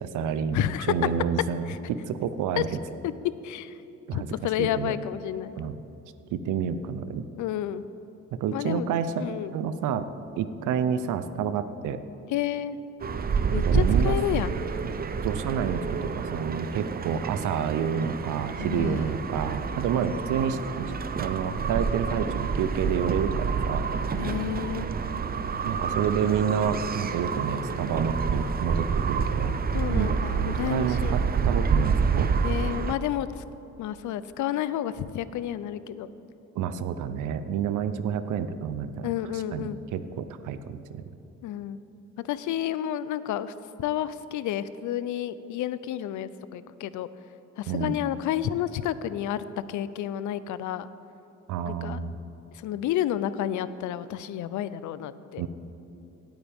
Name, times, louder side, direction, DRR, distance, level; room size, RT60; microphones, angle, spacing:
voice 1, 0.0-1.7 2.1-2.8 4.1-4.3 4.6-4.9 5.6-5.8 6.3-7.2 8.3-9.2 9.5-10.1 10.4-12.0 13.5-14.2 15.2-20.9 21.2-23.9 25.6-29.5 29.9-30.1 30.6-32.3 36.6-39.1 39.5-41.0 47.7-48.0 51.5-52.1 55.4-55.5, right 7 dB, 85° right, 12 dB, 0.7 m, -29 dB
voice 2, 0.5-0.9 1.7-1.8 2.6-2.7 3.0-3.1 3.4-3.8 4.1-5.5 7.4-7.8 8.5-8.9 9.2-9.5 12.3-12.8 13.5-14.5 18.6-19.1 24.1-24.9 29.7-31.2 32.4-33.4 33.8-36.1 39.0-39.8 41.4-41.8 42.2-47.1 47.6-50.9 51.7-52.0 52.5-55.4, left 11 dB, 75° left, 15 dB, 0.5 m, -30 dB
sound 1, 13.0-32.9, right 5 dB, 30° right, 0.6 m, -28 dB
17.5 x 9.0 x 3.6 m, 3.0 s
cardioid pair, 90°, 30 cm